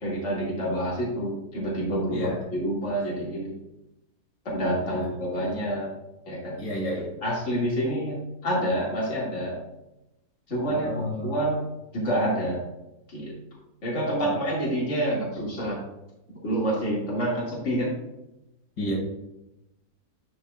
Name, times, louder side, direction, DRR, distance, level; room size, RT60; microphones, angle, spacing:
voice 1, 0.0-3.5 4.4-5.9 6.3-6.5 7.2-8.2 8.4-9.6 10.5-11.6 11.9-12.6 13.1-13.3 13.8-15.8 16.4-17.9, right 1 dB, 45° left, -5 dB, 2.6 m, -27 dB
voice 2, 6.6-7.1 10.7-11.3 18.8-19.0, equal, 80° left, -3 dB, 2.9 m, -30 dB
10.5 x 6.3 x 2.4 m, 0.91 s
omnidirectional pair, 1.7 m